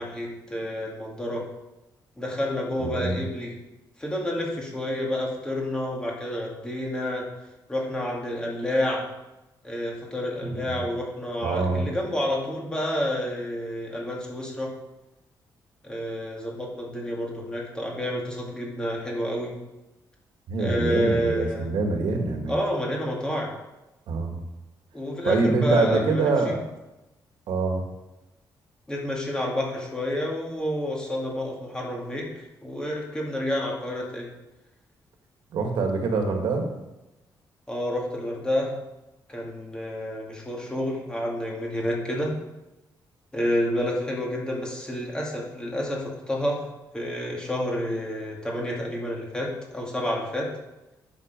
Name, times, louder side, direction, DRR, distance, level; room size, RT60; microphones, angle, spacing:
voice 1, 0.0-1.4 2.2-3.6 4.0-7.3 7.7-9.1 9.6-14.7 15.8-19.6 20.6-21.7 22.5-23.6 24.9-26.6 28.9-32.3 32.6-34.3 37.7-38.7 39.3-42.3 43.3-46.6 46.9-50.5, left 1 dB, 10° left, -2 dB, 2.2 m, -29 dB
voice 2, 2.8-3.2 10.4-10.8 11.4-11.9 20.5-22.6 24.1-24.4 25.2-26.6 27.5-27.8 35.5-36.7, right 3 dB, 80° right, 3 dB, 1.9 m, -25 dB
10.5 x 6.7 x 5.3 m, 0.98 s
cardioid pair, 155°, 8 cm